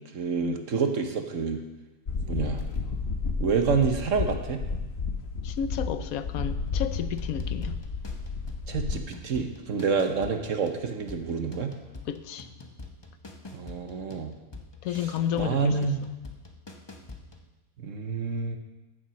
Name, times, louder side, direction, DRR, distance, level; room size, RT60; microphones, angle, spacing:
voice 1, 0.1-1.6 2.3-2.6 3.4-4.6 8.7-11.7 13.5-14.3 15.0-15.1 15.3-16.0 17.8-18.6, right 5 dB, 50° right, 6 dB, 1.3 m, -28 dB
sound 1, 2.1-9.0, left 4 dB, 40° left, 1.2 m, -32 dB
voice 2, 5.4-7.8 12.1-12.5 14.8-15.9, left 9 dB, 65° left, 11 dB, 1.1 m, -32 dB
sound 2, 7.1-17.5, left 3 dB, 20° left, 0.7 m, -46 dB
14.0 x 7.3 x 6.2 m, 1.1 s
omnidirectional pair, 1.8 m